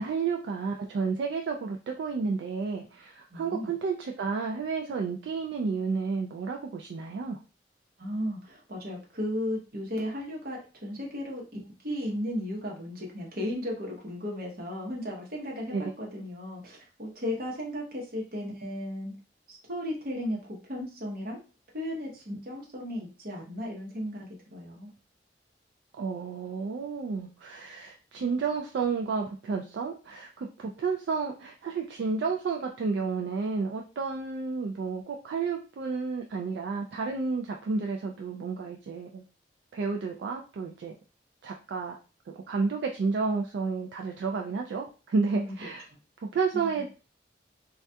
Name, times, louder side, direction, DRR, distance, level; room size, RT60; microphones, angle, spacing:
voice 1, 0.0-7.4 15.7-15.8 26.0-39.2 39.7-40.9 41.4-42.0 42.5-45.9 46.3-46.9, right 4 dB, 70° right, 1 dB, 0.3 m, -31 dB
voice 2, 3.3-3.7 8.0-11.4 11.8-19.1 19.5-21.4 21.7-24.9 45.3-45.5 46.5-46.7, left 1 dB, 55° right, -1 dB, 0.8 m, -35 dB
2.3 x 2.2 x 2.6 m, 0.34 s
head